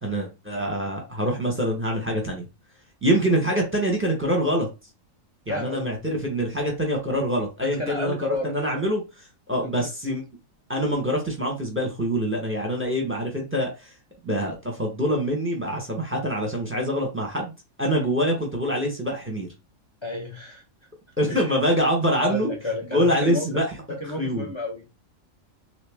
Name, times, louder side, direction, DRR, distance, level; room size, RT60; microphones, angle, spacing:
voice 1, 0.0-2.4 3.0-4.7 5.5-10.2 10.7-13.8 14.2-17.5 17.8-19.5 21.2-22.5 22.9-23.7 24.0-24.5, equal, 10° right, 0.8 m, -25 dB
voice 2, 5.5-6.0 7.6-8.8 9.6-9.9 17.9-18.1 20.0-20.6 21.3-21.6 22.2-23.5 24.0-24.9, left 2 dB, 35° left, 0.4 m, -32 dB
2.9 x 2.9 x 3.4 m
omnidirectional pair, 1.4 m